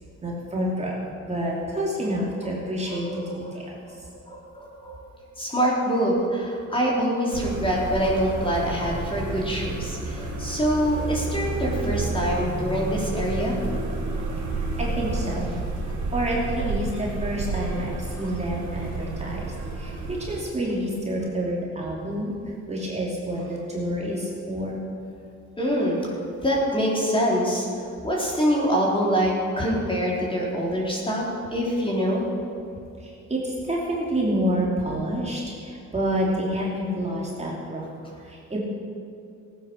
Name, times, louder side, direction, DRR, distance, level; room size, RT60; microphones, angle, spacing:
voice 1, 0.2-4.1 14.6-15.5 16.1-24.8 33.0-38.6, equal, 20° right, -4 dB, 3.0 m, -28 dB
voice 2, 2.9-3.5 4.3-5.0 5.4-13.6 14.2-14.3 17.8-17.9 25.6-26.0 26.4-27.7 28.0-31.3 31.5-32.3, equal, 15° left, -4 dB, 3.7 m, -25 dB
sound 1, 7.3-20.4, right 3 dB, 75° right, 3.1 m, -30 dB
16.5 x 9.2 x 6.4 m, 2.4 s
cardioid pair, 90°, 30 cm